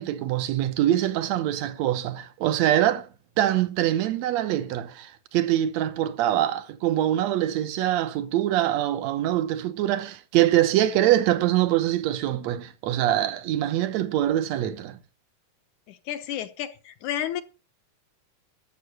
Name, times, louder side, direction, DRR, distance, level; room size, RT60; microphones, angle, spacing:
voice 1, 0.0-3.1 3.4-15.0, right 12 dB, 70° right, 1.9 m, -24 dB
voice 2, 15.9-17.4, left 10 dB, 70° left, 2.3 m, -31 dB
13.0 x 7.4 x 6.6 m
omnidirectional pair, 3.8 m